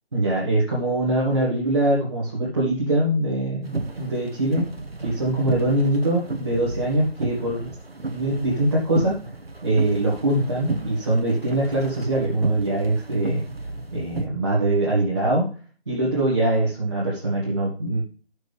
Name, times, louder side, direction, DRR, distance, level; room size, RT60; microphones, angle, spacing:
voice 1, 0.1-4.7 5.0-7.7 8.1-9.2 9.6-13.4 13.9-15.5 15.9-18.0, right 1 dB, 25° right, -7 dB, 1.9 m, -23 dB
sound 1, 3.6-14.3, right 2 dB, 75° right, 1.4 m, -33 dB
12.0 x 6.5 x 3.4 m, 0.41 s
figure-of-eight pair, 170°, 31 cm